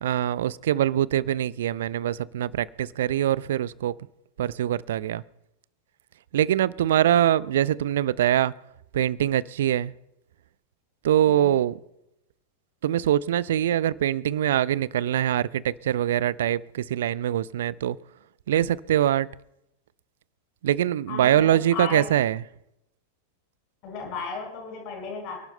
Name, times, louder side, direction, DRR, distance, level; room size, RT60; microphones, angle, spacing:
voice 1, 0.0-3.9 4.4-5.2 6.3-8.5 8.9-9.9 11.0-11.8 12.8-18.0 18.5-19.3 20.6-22.4, right 11 dB, 60° right, 0.4 m, -23 dB
voice 2, 7.0-7.5 11.3-11.6 21.1-22.0 23.8-25.4, left 5 dB, 40° left, 5.5 m, -35 dB
28.5 x 11.5 x 2.2 m
figure-of-eight pair, 90°, 0 cm